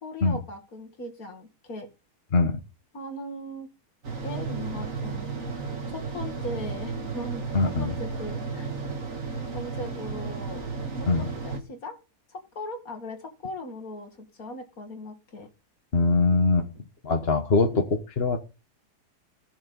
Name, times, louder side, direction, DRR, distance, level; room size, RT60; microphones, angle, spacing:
voice 1, 0.0-1.9 2.9-3.7 4.2-5.3 5.9-8.7 9.5-10.6 11.2-11.9 12.3-15.5, left 1 dB, 60° left, 2.6 m, -38 dB
sound 1, 4.0-11.6, right 4 dB, 55° right, 2.5 m, -33 dB
voice 2, 7.5-7.9 11.1-11.2 15.9-16.7 17.0-18.4, left 3 dB, 40° left, 1.6 m, -22 dB
15.0 x 7.6 x 5.5 m
omnidirectional pair, 1.7 m